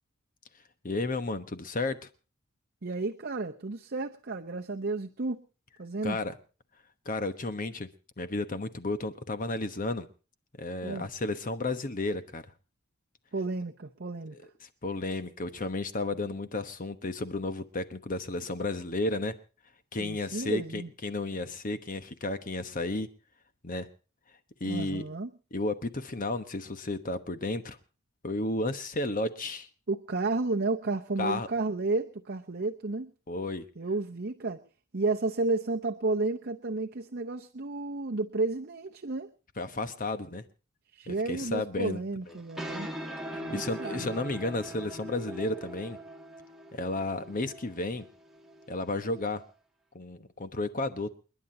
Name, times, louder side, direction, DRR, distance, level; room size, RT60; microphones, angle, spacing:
voice 1, 0.8-2.1 6.0-6.3 7.0-7.9 8.2-10.1 10.6-12.4 14.6-19.3 19.9-23.1 23.6-23.9 24.6-25.1 25.5-27.8 28.2-29.7 31.2-31.5 33.3-33.6 39.6-40.4 41.1-42.0 42.3-42.4 43.5-46.0 46.7-48.1 48.7-49.4 49.9-51.2, left 2 dB, 40° left, 10 dB, 1.1 m, -32 dB
voice 2, 2.8-5.4 5.8-6.2 10.8-11.1 13.3-14.4 20.0-20.9 24.6-25.3 29.9-33.1 33.8-34.6 34.9-39.3 40.9-42.9 43.3-44.1, right 3 dB, 50° right, 4 dB, 0.9 m, -32 dB
sound 1, 42.3-49.4, right 1 dB, ahead, 2.0 m, -41 dB
29.5 x 11.0 x 2.8 m, 0.35 s
head